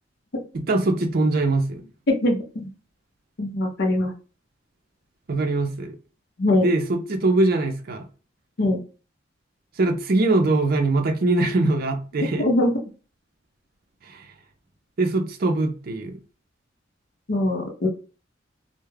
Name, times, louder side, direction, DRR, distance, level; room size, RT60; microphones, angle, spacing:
voice 1, 0.5-1.9 5.3-6.0 6.6-8.1 9.8-12.5 14.1-14.3 15.0-16.2, right 2 dB, 50° right, 0.5 m, -22 dB
voice 2, 2.1-2.4 3.4-4.1 6.4-6.7 8.6-8.8 12.4-12.8 17.3-17.9, left 1 dB, 60° left, 0.6 m, -21 dB
2.2 x 2.1 x 3.1 m
head